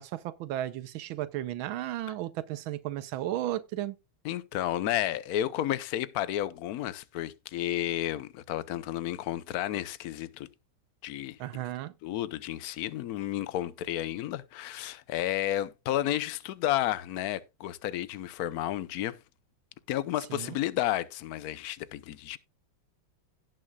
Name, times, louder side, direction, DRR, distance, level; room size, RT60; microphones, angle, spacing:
voice 1, 0.0-3.9 11.4-11.9 20.3-20.6, right 13 dB, 85° right, 1.5 m, -34 dB
voice 2, 4.2-10.5 11.0-11.4 12.0-19.2 19.9-22.4, left 13 dB, 65° left, 1.0 m, -32 dB
17.5 x 6.3 x 2.3 m
omnidirectional pair, 2.2 m